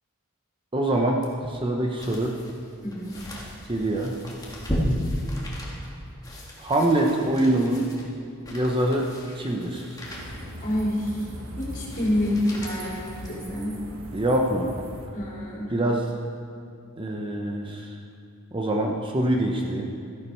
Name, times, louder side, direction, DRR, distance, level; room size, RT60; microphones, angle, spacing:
voice 1, 0.7-2.4 3.7-4.2 6.6-7.9 8.5-9.1 9.3-10.0 14.1-14.7 15.7-16.1 17.0-18.0 18.5-20.0, right 1 dB, 25° right, 1 dB, 0.7 m, -24 dB
sound 1, 1.2-13.9 14.4-14.5, equal, 15° left, 1.9 m, -35 dB
voice 2, 2.8-3.2 10.6-11.3 11.6-13.8 15.1-15.7, left 1 dB, 40° left, -6 dB, 3.7 m, -28 dB
sound 2, 10.0-15.1, right 1 dB, 70° right, 1.5 m, -39 dB
14.0 x 10.5 x 4.5 m, 2.5 s
head